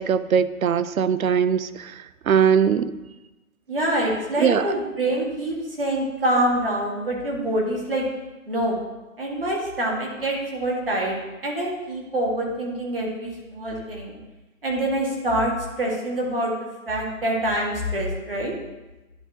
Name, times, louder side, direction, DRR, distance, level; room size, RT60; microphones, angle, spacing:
voice 1, 0.0-3.0 4.4-4.7, right 7 dB, 80° right, 15 dB, 0.5 m, -21 dB
voice 2, 3.7-8.1 8.5-8.8 9.2-11.2 11.4-14.2 14.6-15.5 15.8-16.6 16.9-18.5, right 1 dB, 40° right, -2 dB, 1.8 m, -25 dB
10.5 x 3.9 x 3.6 m, 1.1 s
hypercardioid pair, 175°, 41 cm